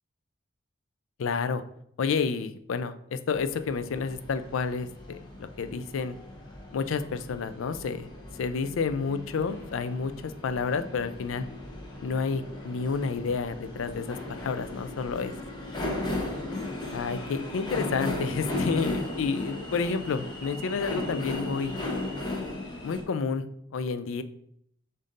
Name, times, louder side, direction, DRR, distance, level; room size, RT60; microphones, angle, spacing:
voice 1, 1.2-1.6 2.0-6.1 6.7-8.1 8.4-11.4 12.0-15.3 16.9-21.8 22.8-23.4 23.7-24.2, left 5 dB, 85° left, 11 dB, 0.4 m, -30 dB
sound 1, 3.3-23.0, left 2 dB, 20° left, 0.8 m, -36 dB
5.1 x 2.7 x 3.8 m, 0.70 s
head